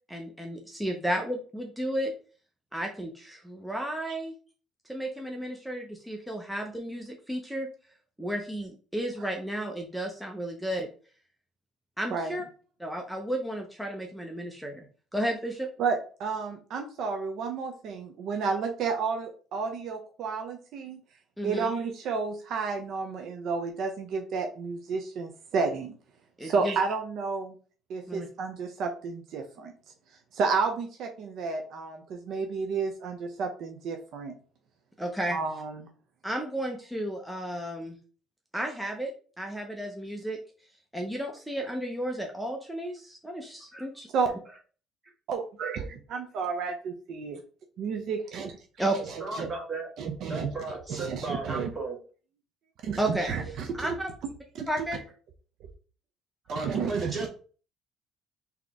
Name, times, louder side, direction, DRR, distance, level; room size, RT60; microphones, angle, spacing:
voice 1, 0.1-2.1 2.7-4.3 4.9-7.7 8.2-10.9 12.0-12.4 12.8-14.9 15.1-15.7 21.4-21.7 26.4-26.8 28.1-28.3 35.0-35.4 36.2-38.0 38.5-40.4 40.9-44.1 48.8-49.0 53.0-54.1 54.7-55.0, right 1 dB, ahead, 1 dB, 0.6 m, -33 dB
voice 2, 15.8-21.0 21.4-25.9 26.4-27.5 27.9-29.7 30.4-34.3 35.3-35.7 44.1-44.3 45.3-47.4 47.8-48.5 49.4-49.5 50.0-50.5 51.0-51.7 52.8-53.0 53.3-53.4 56.6-57.1, right 5 dB, 65° right, 4 dB, 0.6 m, -31 dB
voice 3, 49.2-49.9 50.3-52.0 56.5-57.3, right 3 dB, 25° right, 0 dB, 1.7 m, -35 dB
3.9 x 2.9 x 3.5 m, 0.39 s
cardioid pair, 110°, 0 cm